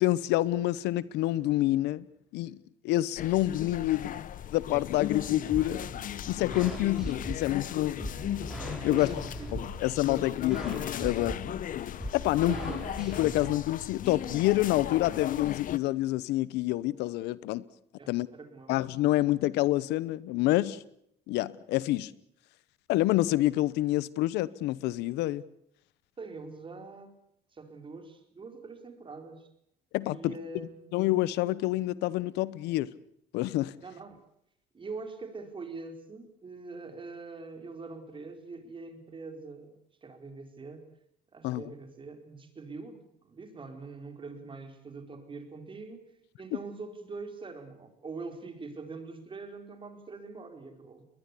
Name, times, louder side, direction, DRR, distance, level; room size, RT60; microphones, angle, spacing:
voice 1, 0.0-2.1 2.3-2.6 2.8-4.1 4.5-5.8 6.3-8.0 8.8-9.1 9.5-11.4 12.1-12.6 13.0-17.6 18.1-18.3 18.7-20.8 21.3-22.1 22.9-25.4 29.9-30.4 30.9-32.9 33.3-33.7 41.4-41.6, left 16 dB, 90° left, 0.9 m, -27 dB
sound 1, 3.2-15.8, left 10 dB, 55° left, 1.0 m, -37 dB
sound 2, 5.5-13.5, right 1 dB, 5° right, 7.1 m, -41 dB
voice 2, 8.9-9.5 12.3-12.9 18.0-18.7 26.2-27.1 27.5-29.5 30.1-30.9 33.8-34.2 34.7-39.7 40.0-40.9 41.3-46.0 46.4-51.1, right 3 dB, 30° right, 4.5 m, -43 dB
21.0 x 20.5 x 8.4 m
cardioid pair, 110°, 17 cm